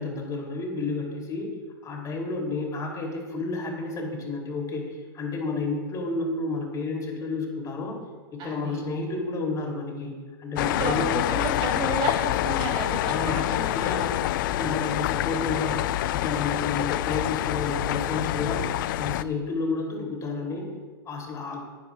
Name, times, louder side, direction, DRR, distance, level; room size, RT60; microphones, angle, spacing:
voice 1, 0.0-1.5 1.8-8.0 8.3-11.1 13.1-14.1 14.4-18.7 19.0-20.7 21.0-21.6, left 3 dB, 30° left, 0 dB, 3.3 m, -31 dB
voice 2, 8.4-8.8 10.7-14.1, right 3 dB, 40° right, 0 dB, 3.4 m, -32 dB
sound 1, 10.6-19.2, left 14 dB, 60° left, 0.4 m, -27 dB
19.5 x 10.0 x 2.5 m, 1.4 s
hypercardioid pair, 105°, 12 cm